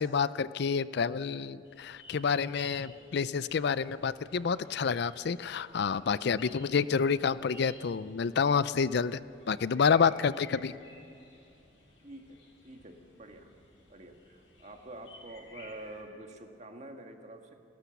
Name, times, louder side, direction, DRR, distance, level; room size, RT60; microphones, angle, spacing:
voice 1, 0.0-9.2 9.5-10.7, left 6 dB, 60° left, 16 dB, 0.4 m, -28 dB
sound 1, 1.6-16.0, left 2 dB, 80° left, 6.0 m, -56 dB
voice 2, 12.0-12.4 12.6-13.5 13.9-17.5, right 1 dB, 40° right, 4 dB, 1.8 m, -47 dB
29.5 x 13.0 x 7.1 m, 2.5 s
head